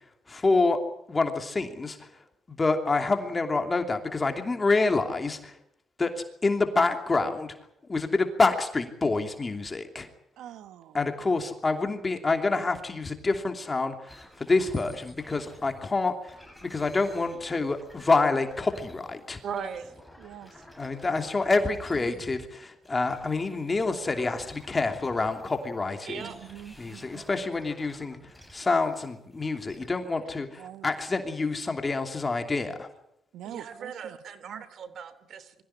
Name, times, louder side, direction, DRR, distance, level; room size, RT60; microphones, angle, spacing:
voice 1, 0.3-0.8 1.1-2.0 2.6-5.5 6.0-6.1 6.4-7.5 7.9-10.1 10.9-16.1 16.6-19.4 20.8-26.2 26.8-28.2 28.5-32.9, left 3 dB, 25° left, 2.9 m, -27 dB
voice 2, 10.4-11.0 19.6-19.7 20.2-20.5 21.9-22.1 26.2-27.2 30.6-30.9 33.3-34.2 34.4-34.6, right 11 dB, 85° right, 1.3 m, -44 dB
sound 1, 14.1-15.9 16.3-19.2 19.5-22.5 22.8-25.8 26.1-29.9, equal, ahead, 7.8 m, -51 dB
voice 3, 19.4-19.9 26.0-26.4 33.4-35.6, right 7 dB, 60° right, 2.8 m, -38 dB
23.0 x 15.5 x 10.0 m
cardioid pair, 90°, 0 cm